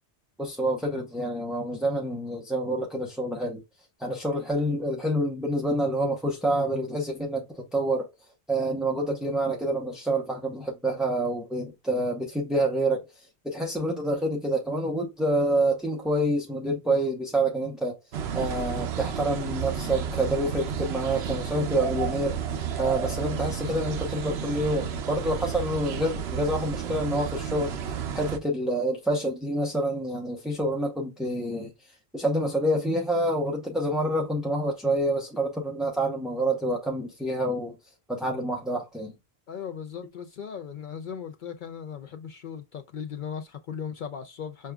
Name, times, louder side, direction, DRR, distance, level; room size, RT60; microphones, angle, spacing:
voice 1, 0.4-3.6 4.0-8.1 8.5-13.0 13.4-18.0 18.3-22.4 22.8-27.7 28.1-31.7 32.1-37.7 38.1-39.1, right 1 dB, ahead, 0.6 m, -27 dB
sound 1, 18.1-28.4, right 8 dB, 75° right, 0.9 m, -32 dB
voice 2, 39.5-44.7, left 7 dB, 60° left, 0.6 m, -37 dB
6.4 x 2.3 x 2.3 m
omnidirectional pair, 1.1 m